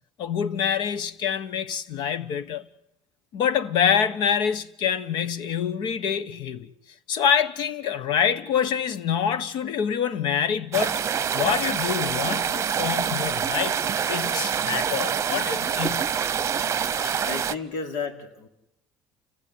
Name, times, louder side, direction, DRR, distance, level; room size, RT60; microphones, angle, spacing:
voice 1, 0.2-2.7 3.3-6.7 7.1-11.0 11.3-13.8 14.1-16.1 17.0-17.3, left 8 dB, 70° left, 1.4 m, -26 dB
sound 1, 10.7-17.5, right 8 dB, 35° right, 0.9 m, -26 dB
voice 2, 17.2-18.5, left 5 dB, 90° left, 4.1 m, -33 dB
30.0 x 15.5 x 10.0 m
cardioid pair, 105°, 8 cm